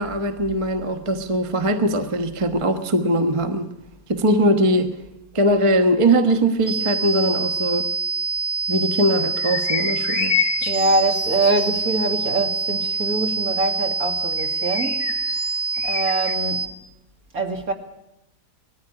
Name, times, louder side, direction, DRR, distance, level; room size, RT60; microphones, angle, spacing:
voice 1, 0.0-3.7 4.1-4.9 5.3-7.9 8.7-10.3, right 1 dB, 20° right, 1.2 m, -20 dB
sound 1, 6.7-16.7, right 4 dB, 35° left, 1.3 m, -25 dB
sound 2, 9.4-12.0 14.4-16.3, left 11 dB, 55° left, 1.3 m, -29 dB
voice 2, 10.6-15.2 15.8-16.7 17.3-17.7, right 2 dB, 55° right, 2.7 m, -24 dB
20.0 x 14.5 x 9.9 m
omnidirectional pair, 1.8 m